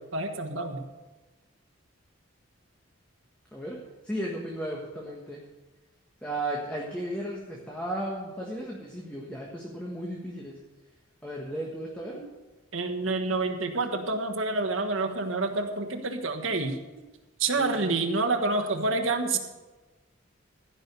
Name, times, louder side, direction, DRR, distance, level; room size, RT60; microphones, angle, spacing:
voice 1, 0.1-0.8 12.1-12.2 12.7-16.8 17.4-19.4, right 3 dB, 75° right, 5 dB, 1.4 m, -28 dB
voice 2, 3.5-5.4 6.2-10.6 11.2-12.2 17.5-17.9, right 1 dB, 5° left, -3 dB, 1.5 m, -35 dB
15.5 x 5.5 x 8.1 m, 1.2 s
head